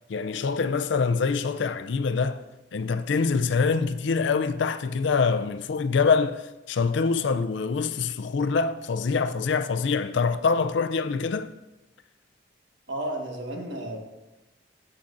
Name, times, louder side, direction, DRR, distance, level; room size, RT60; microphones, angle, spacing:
voice 1, 0.1-2.4 2.7-11.5, left 5 dB, 65° left, 0.4 m, -25 dB
voice 2, 12.9-14.0, right 1 dB, 65° right, 1.4 m, -32 dB
11.0 x 7.4 x 2.6 m
head